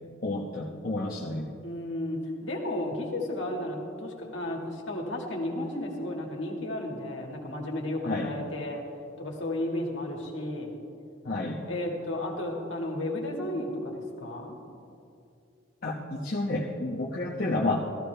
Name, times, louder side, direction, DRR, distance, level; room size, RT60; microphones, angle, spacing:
voice 1, 0.2-1.5 8.0-8.3 11.2-11.6 15.8-17.9, left 2 dB, 45° left, -4 dB, 1.0 m, -30 dB
voice 2, 1.6-8.8 9.2-10.7 11.7-14.6, left 1 dB, 65° left, 0 dB, 2.0 m, -33 dB
16.5 x 14.0 x 3.4 m, 2.5 s
head